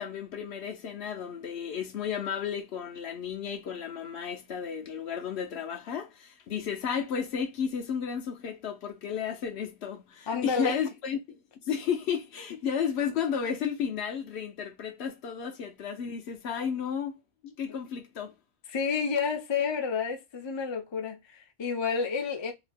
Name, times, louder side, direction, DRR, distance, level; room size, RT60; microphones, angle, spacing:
voice 1, 0.0-11.4 11.7-17.1 17.4-18.3, left 7 dB, 65° left, 0.8 m, -33 dB
voice 2, 10.3-10.8 18.7-22.5, left 5 dB, 35° left, 0.4 m, -30 dB
2.8 x 2.2 x 3.3 m
omnidirectional pair, 1.2 m